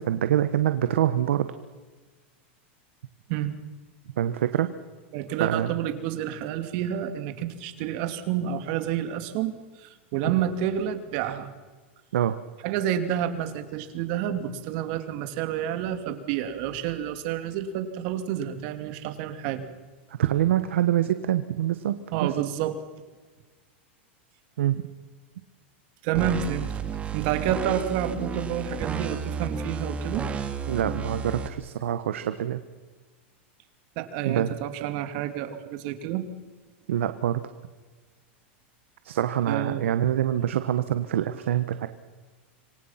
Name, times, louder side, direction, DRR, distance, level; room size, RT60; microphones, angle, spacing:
voice 1, 0.0-1.5 4.2-4.7 5.4-5.7 12.1-12.4 20.2-22.3 24.6-24.8 30.7-32.6 34.2-34.5 36.9-37.4 39.0-41.9, right 11 dB, 90° right, 11 dB, 1.3 m, -25 dB
voice 2, 5.1-11.5 12.6-19.6 22.1-22.8 26.0-26.7 27.1-30.2 34.0-36.2 39.5-39.9, right 10 dB, 50° right, 9 dB, 2.8 m, -29 dB
sound 1, 26.1-31.5, right 5 dB, 20° right, 2.3 m, -32 dB
27.0 x 24.0 x 5.9 m, 1.4 s
supercardioid pair, 145°, 7 cm